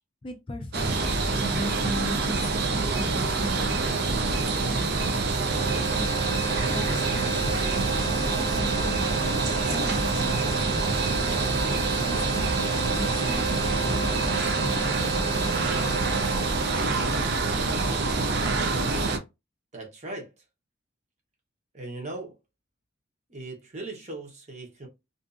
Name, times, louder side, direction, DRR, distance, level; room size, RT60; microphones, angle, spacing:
voice 1, 0.2-4.9 5.9-6.4 6.6-12.6 12.9-13.5 13.8-16.0, left 1 dB, 25° left, 0.4 m, -39 dB
sound 1, 0.7-19.2, right 3 dB, 55° right, 0.5 m, -26 dB
sound 2, 5.5-17.7, right 6 dB, 80° right, 1.4 m, -34 dB
voice 2, 19.7-20.4 21.7-22.4 23.3-24.9, right 2 dB, 35° right, 0.9 m, -38 dB
2.6 x 2.4 x 2.4 m
head